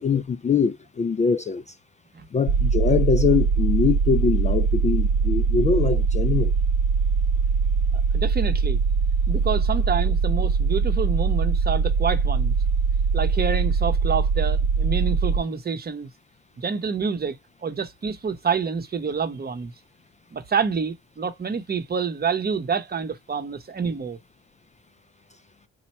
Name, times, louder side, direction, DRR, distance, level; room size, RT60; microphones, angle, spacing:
voice 1, 0.0-1.7 2.3-6.5, left 6 dB, 25° left, 0.3 m, -23 dB
sound 1, 2.5-15.4, right 5 dB, 65° right, 0.6 m, -22 dB
voice 2, 8.1-8.8 9.3-12.5 13.1-16.1 16.6-19.7 20.3-24.2, right 6 dB, 30° right, 0.8 m, -27 dB
4.3 x 2.2 x 4.2 m
cardioid pair, 90°, 30 cm